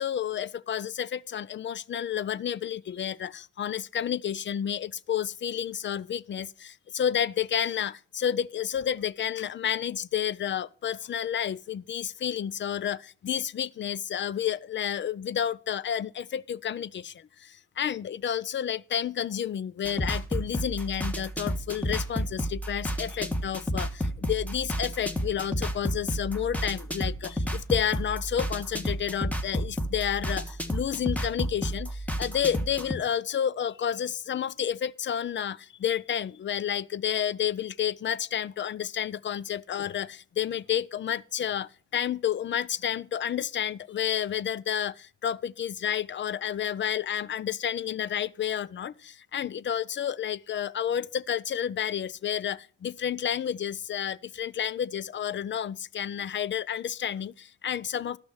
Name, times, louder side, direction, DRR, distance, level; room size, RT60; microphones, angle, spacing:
voice 1, 0.0-58.2, left 9 dB, 40° left, 0.5 m, -30 dB
sound 1, 19.8-32.9, equal, 5° left, 1.5 m, -31 dB
12.5 x 6.2 x 6.2 m
supercardioid pair, 60°, 31 cm